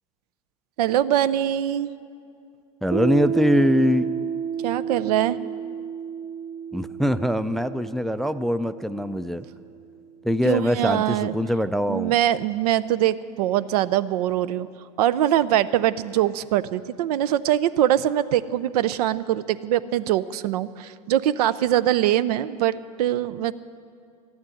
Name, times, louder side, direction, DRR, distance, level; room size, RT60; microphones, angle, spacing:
voice 1, 0.8-1.9 4.6-5.4 10.4-11.3 11.9-14.7 15.0-23.5, right 12 dB, 75° right, 15 dB, 0.5 m, -23 dB
voice 2, 2.8-4.1 6.7-9.5 10.2-12.1, equal, ahead, 11 dB, 0.4 m, -23 dB
Piano, 2.9-10.2, right 7 dB, 30° right, 0.7 m, -31 dB
12.5 x 9.6 x 9.9 m, 2.4 s
hypercardioid pair, 100°, 20 cm